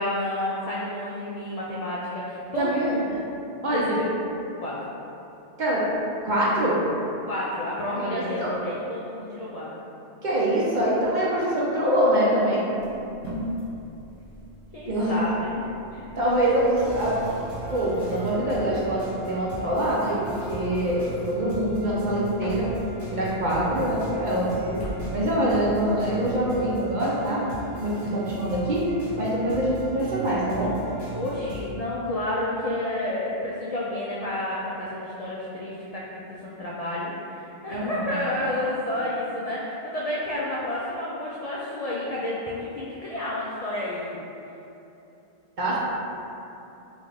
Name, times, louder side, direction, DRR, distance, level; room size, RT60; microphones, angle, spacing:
voice 1, 0.0-3.1 3.7-4.1 4.6-4.8 7.3-9.7 14.7-15.7 31.1-44.2, left 1 dB, 65° left, -6 dB, 0.3 m, -30 dB
voice 2, 2.6-2.9 3.6-3.9 5.6-5.9 6.2-6.8 7.9-8.5 10.2-12.6 14.9-15.2 15.9-22.7 23.1-24.8 25.1-27.4 27.8-28.9 29.2-30.7 37.7-38.2 38.5-38.6 45.6-45.8, right 1 dB, 50° right, -6 dB, 0.6 m, -24 dB
sound 1, 12.8-26.6, equal, 85° left, 1.1 m, -42 dB
sound 2, 16.8-31.7, right 1 dB, 15° left, 1.6 m, -38 dB
3.9 x 2.4 x 3.2 m, 2.8 s
omnidirectional pair, 1.2 m